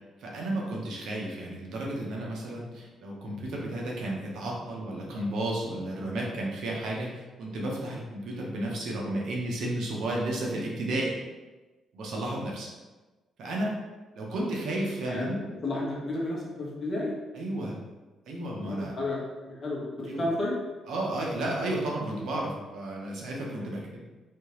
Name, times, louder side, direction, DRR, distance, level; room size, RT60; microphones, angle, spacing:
voice 1, 0.2-11.2 11.9-12.7 13.4-13.7 14.1-15.4 17.3-17.8 18.3-18.9 20.1-20.2 20.9-24.1, right 1 dB, 75° right, -2 dB, 0.9 m, -32 dB
voice 2, 15.6-17.1 18.6-20.6 22.1-22.2 23.5-23.7, left 2 dB, 40° left, -4 dB, 1.2 m, -32 dB
3.3 x 2.8 x 3.1 m, 1.2 s
cardioid pair, 90°, 0 cm